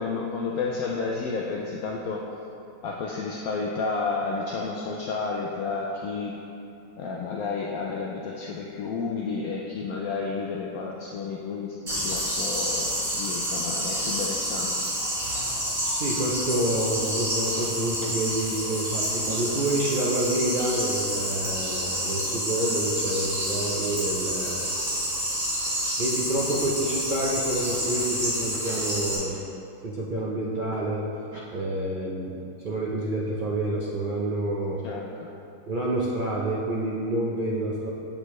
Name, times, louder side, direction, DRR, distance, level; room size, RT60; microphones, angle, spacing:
voice 1, 0.0-2.2 2.8-6.4 7.0-12.9 13.2-14.7 34.8-35.3, left 4 dB, 70° left, -2 dB, 0.9 m, -31 dB
sound 1, 11.9-29.2, equal, 50° right, 2.3 m, -29 dB
voice 2, 15.9-24.7 26.0-29.4 29.8-31.0 31.3-32.3 32.6-34.8 35.7-37.9, right 1 dB, 85° right, -6 dB, 0.4 m, -28 dB
8.0 x 6.4 x 3.1 m, 2.7 s
omnidirectional pair, 1.8 m